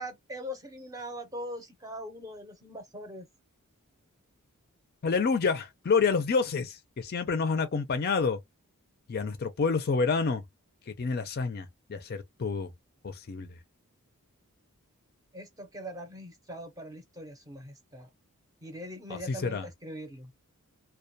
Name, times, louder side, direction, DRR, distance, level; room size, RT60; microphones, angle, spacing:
voice 1, 0.0-3.3 15.3-18.1 18.6-20.3, equal, 15° right, 0.6 m, -41 dB
voice 2, 5.0-8.4 9.1-10.4 10.9-12.7 13.0-13.6 19.1-19.7, left 5 dB, 45° left, 0.4 m, -28 dB
2.2 x 2.2 x 2.6 m
head